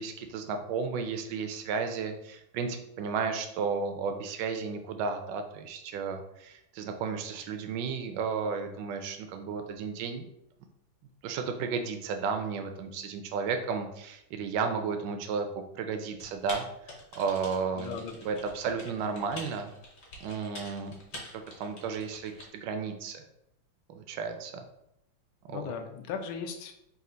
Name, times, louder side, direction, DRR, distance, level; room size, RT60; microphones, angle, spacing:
voice 1, 0.0-10.3 11.2-16.6 17.1-18.0 18.2-19.7 20.2-23.2 23.9-24.6 25.4-25.7, right 5 dB, 75° right, 6 dB, 1.1 m, -33 dB
Typing, 16.2-22.4, left 1 dB, 60° left, 1.6 m, -46 dB
voice 2, 17.7-18.3 25.5-26.7, left 7 dB, 85° left, 6 dB, 1.4 m, -37 dB
4.2 x 2.4 x 3.8 m, 0.81 s
omnidirectional pair, 2.2 m